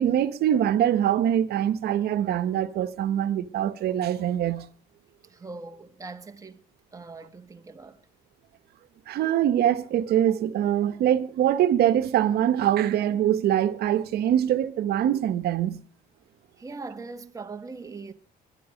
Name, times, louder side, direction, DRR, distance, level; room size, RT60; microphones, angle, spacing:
voice 1, 0.0-4.7 9.1-15.8, right 10 dB, 70° right, 1.4 m, -23 dB
voice 2, 5.3-6.6 6.9-8.0 16.6-18.1, right 3 dB, 20° right, 1.8 m, -41 dB
22.0 x 11.0 x 5.2 m
cardioid pair, 110°, 17 cm